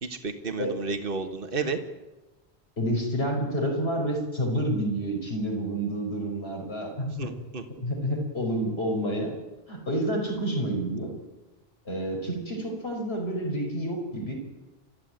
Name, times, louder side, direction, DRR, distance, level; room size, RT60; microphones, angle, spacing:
voice 1, 0.0-1.8 7.2-7.7, right 4 dB, 60° right, 7 dB, 1.9 m, -32 dB
voice 2, 2.8-7.1 7.8-9.3 9.7-11.1 11.9-14.3, right 1 dB, 80° left, 2 dB, 5.4 m, -29 dB
30.0 x 14.0 x 9.1 m, 1.1 s
omnidirectional pair, 1.0 m